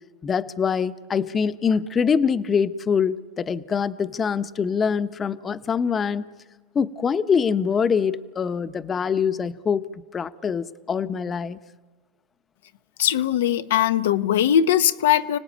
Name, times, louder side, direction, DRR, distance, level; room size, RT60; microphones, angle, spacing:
voice 1, 0.2-6.3 6.7-11.6, left 6 dB, 30° left, 12 dB, 1.0 m, -24 dB
voice 2, 13.0-15.4, left 10 dB, 85° left, 10 dB, 0.9 m, -20 dB
30.0 x 18.0 x 9.4 m, 1.4 s
hypercardioid pair, 100°, 0 cm